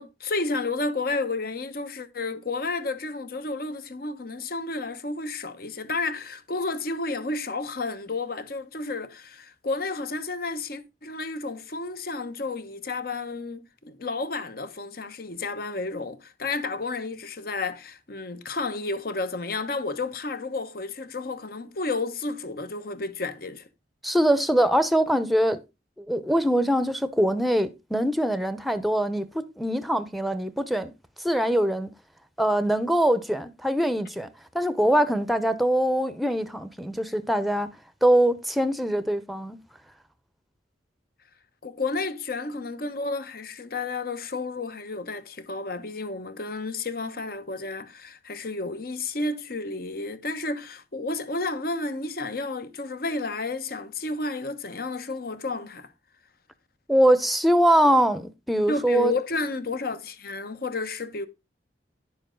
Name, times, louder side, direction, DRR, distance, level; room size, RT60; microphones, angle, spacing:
voice 1, 0.0-23.7 41.6-55.9 58.7-61.3, left 3 dB, 55° left, 1.0 m, -31 dB
voice 2, 24.0-25.6 26.0-30.9 31.2-31.9 32.4-34.3 34.5-37.7 38.0-39.6 56.9-59.1, right 1 dB, ahead, 0.7 m, -23 dB
11.0 x 7.1 x 3.8 m
head